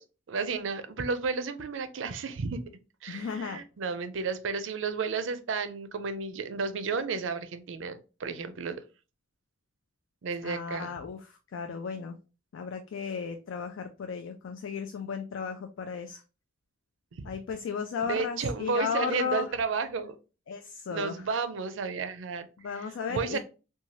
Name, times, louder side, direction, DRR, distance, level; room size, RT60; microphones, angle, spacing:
voice 1, 0.0-2.7 3.0-8.8 10.2-10.9 17.1-17.2 18.0-20.2 20.9-22.5 23.1-23.4, right 4 dB, 70° right, 11 dB, 0.4 m, -32 dB
voice 2, 3.1-3.6 10.4-12.1 12.5-16.2 17.2-19.5 20.5-21.3 22.6-23.4, left 6 dB, 75° left, 5 dB, 0.3 m, -35 dB
2.7 x 2.2 x 3.0 m, 0.32 s
head